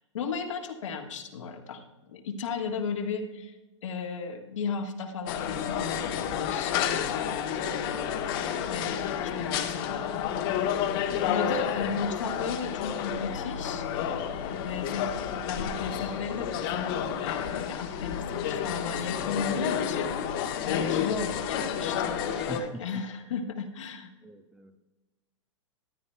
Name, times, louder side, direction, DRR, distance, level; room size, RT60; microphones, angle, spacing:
voice 1, 0.0-3.5 3.8-8.1 8.7-10.2 11.3-15.1 15.5-24.1, left 5 dB, 80° left, 3 dB, 1.6 m, -35 dB
sound 1, 5.3-22.6, left 8 dB, 50° left, 1.1 m, -30 dB
voice 2, 11.1-11.6 22.3-23.0 24.2-24.8, right 1 dB, 5° right, 8 dB, 0.5 m, -41 dB
13.5 x 10.5 x 2.2 m, 1.1 s
hypercardioid pair, 130°, 16 cm